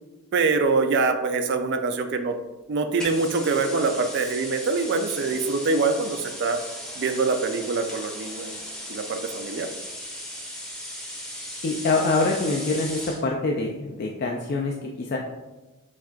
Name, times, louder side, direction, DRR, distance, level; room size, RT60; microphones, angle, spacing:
voice 1, 0.3-2.4 2.7-6.6 7.0-8.6 8.9-9.7, right 4 dB, 55° right, 7 dB, 0.4 m, -24 dB
sound 1, 3.0-13.2, equal, 5° left, 0.7 m, -37 dB
voice 2, 11.6-15.2, left 3 dB, 45° left, 0 dB, 0.3 m, -25 dB
7.1 x 2.4 x 2.4 m, 1.1 s
head